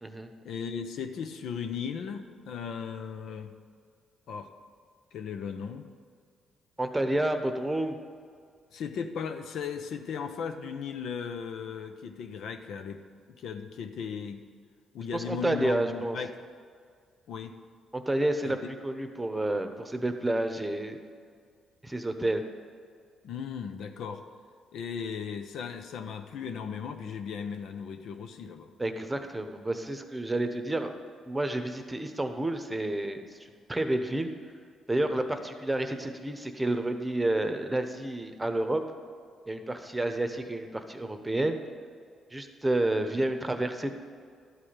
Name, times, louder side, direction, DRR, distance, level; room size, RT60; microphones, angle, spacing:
voice 1, 0.4-3.5 4.3-4.5 5.1-5.9 8.7-13.0 13.4-14.4 14.9-16.3 17.3-17.6 18.4-18.7 23.2-24.2 24.7-28.7, left 6 dB, 75° left, 8 dB, 0.7 m, -37 dB
voice 2, 6.8-8.0 15.1-16.2 17.9-21.0 21.8-22.4 28.8-30.9 31.2-34.3 34.9-38.8 39.5-41.6 42.3-43.9, right 1 dB, 10° right, 6 dB, 0.9 m, -30 dB
12.5 x 4.9 x 8.8 m, 2.1 s
cardioid pair, 90°, 0 cm